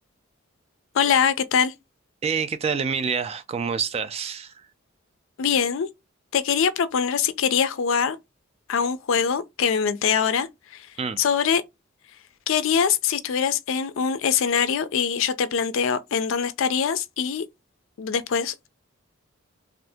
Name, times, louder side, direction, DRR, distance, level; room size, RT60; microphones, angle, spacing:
voice 1, 0.9-1.7 5.4-5.9 6.3-8.2 8.7-10.9 11.2-11.6 12.5-17.4 18.0-18.5, left 7 dB, 70° left, 0.4 m, -23 dB
voice 2, 2.2-4.7 11.0-11.2, right 6 dB, 30° right, 0.3 m, -27 dB
2.6 x 2.5 x 3.4 m
head